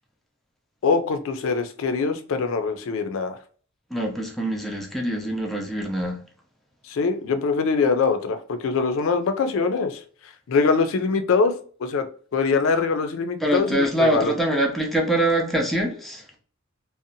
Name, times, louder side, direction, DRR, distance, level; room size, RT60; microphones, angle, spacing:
voice 1, 0.8-3.4 6.8-11.5 11.8-12.0 12.3-14.3, left 4 dB, 70° left, 0.4 m, -23 dB
voice 2, 3.9-6.2 13.4-16.3, right 1 dB, ahead, 0.4 m, -24 dB
2.6 x 2.0 x 2.6 m
head